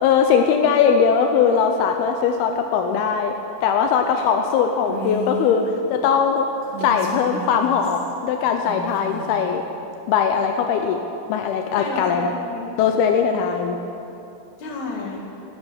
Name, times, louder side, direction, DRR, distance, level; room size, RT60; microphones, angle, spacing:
voice 1, 0.0-3.3 3.6-6.5 6.8-9.6 10.1-11.0 11.3-12.3 12.8-13.8, left 6 dB, 85° left, 5 dB, 2.7 m, -20 dB
Female speech woman speaking, 4.9-5.6 6.6-8.1 8.6-9.5, equal, 50° right, 3.0 m, -33 dB
voice 2, 11.8-12.8 14.6-15.2, left 3 dB, 50° left, -1 dB, 3.1 m, -32 dB
13.5 x 9.1 x 9.9 m, 2.8 s
omnidirectional pair, 4.4 m